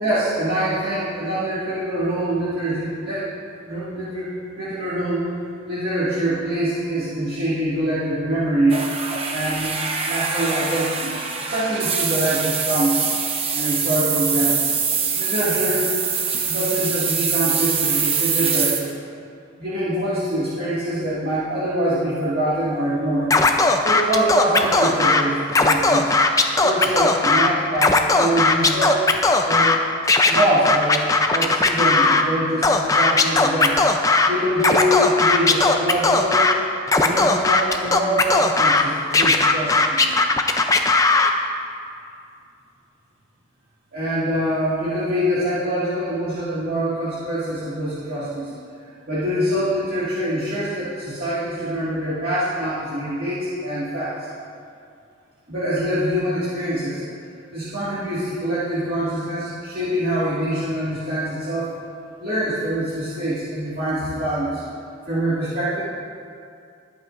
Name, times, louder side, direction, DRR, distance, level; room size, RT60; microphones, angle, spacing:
voice 1, 0.0-3.3 3.6-4.3 4.6-5.3 5.6-8.8 9.3-9.7 10.1-13.0 13.5-14.6 15.2-16.0 16.5-19.0 19.6-23.3 23.8-26.1 26.6-29.0 29.4-29.7 30.3-33.8 34.2-36.5 37.0-40.2 43.9-48.5 48.8-54.3 55.5-57.0 57.5-61.7 62.2-64.6 65.1-65.8, right 1 dB, 45° right, -11 dB, 2.1 m, -24 dB
sound 1, 8.7-18.8, right 5 dB, 30° right, 0.9 m, -24 dB
Scratching (performance technique), 23.3-25.2 25.5-27.5 27.8-29.8 30.1-32.2 32.6-34.3 34.6-36.5 36.9-38.8 39.1-41.3, left 3 dB, 15° left, 0.5 m, -17 dB
21.0 x 8.2 x 2.5 m, 2.4 s
head